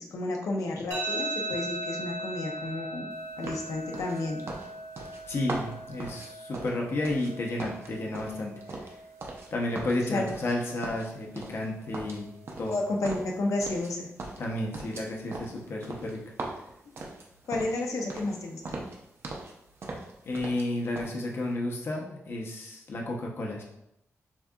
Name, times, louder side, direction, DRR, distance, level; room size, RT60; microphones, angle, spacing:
voice 1, 0.0-3.1 3.4-4.4 10.1-10.3 12.7-14.1 17.5-18.8, left 2 dB, 85° left, 0 dB, 0.8 m, -31 dB
sound 1, 0.9-13.9, right 2 dB, 80° right, 1.2 m, -40 dB
Footsteps Tile Male Sneakers Medium Pace, 3.4-7.3 7.6-9.5 9.7-10.5 10.8-11.7 11.9-13.9 14.2-17.8 18.1-18.4 18.6-19.5 19.8-20.7 20.9-21.1, right 2 dB, 50° right, 0.7 m, -39 dB
voice 2, 5.3-8.5 9.5-12.3 12.6-12.8 14.4-16.2 20.2-23.6, left 1 dB, 50° left, 0 dB, 0.8 m, -32 dB
7.2 x 2.7 x 2.4 m, 0.81 s
wide cardioid pair, 160°, 5 cm